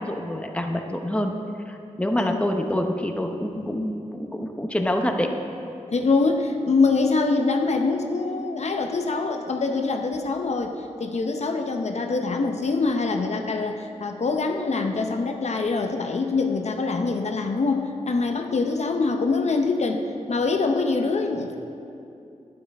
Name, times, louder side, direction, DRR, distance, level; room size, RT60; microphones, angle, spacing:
voice 1, 0.0-1.3 1.7-5.3, left 1 dB, 10° left, 4 dB, 0.7 m, -26 dB
voice 2, 5.9-10.7 11.0-20.0 20.3-21.5, left 3 dB, 60° left, 4 dB, 0.6 m, -24 dB
12.0 x 9.7 x 3.4 m, 2.6 s
wide cardioid pair, 85°, 13 cm